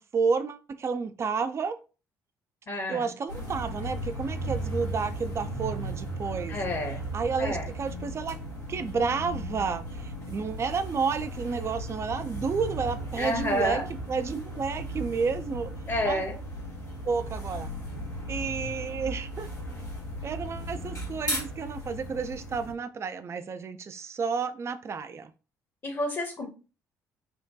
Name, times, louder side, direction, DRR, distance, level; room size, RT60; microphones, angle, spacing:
voice 1, 0.0-1.8 2.9-6.6 7.1-8.4 8.7-13.8 14.1-15.7 16.1-16.2 17.0-17.7 18.3-19.5 20.2-25.3, right 5 dB, 30° right, 0.4 m, -31 dB
voice 2, 2.7-3.1 6.5-7.0 7.4-7.7 13.2-13.9 15.9-16.4 25.8-26.5, left 1 dB, 40° left, 0.9 m, -29 dB
sound 1, 3.3-22.7, right 1 dB, 90° left, 1.2 m, -36 dB
4.3 x 2.2 x 2.6 m
figure-of-eight pair, 45°, 9 cm